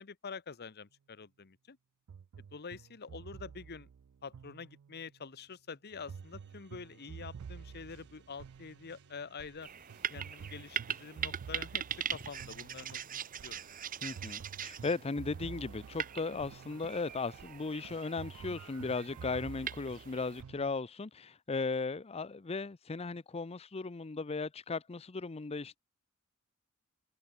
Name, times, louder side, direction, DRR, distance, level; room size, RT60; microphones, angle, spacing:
voice 1, 0.0-1.8 2.5-3.9 4.2-9.7 10.1-11.8 12.1-13.6, left 5 dB, 50° left, 0.9 m, -46 dB
sound 1, 2.1-5.2 6.1-20.8, right 7 dB, 75° right, 0.4 m, -50 dB
sound 2, 5.9-16.7, right 3 dB, 55° right, 2.7 m, -66 dB
sound 3, 9.6-20.4, right 8 dB, 40° right, 1.3 m, -42 dB
voice 2, 14.0-25.8, left 4 dB, 30° left, 0.6 m, -37 dB
open air
head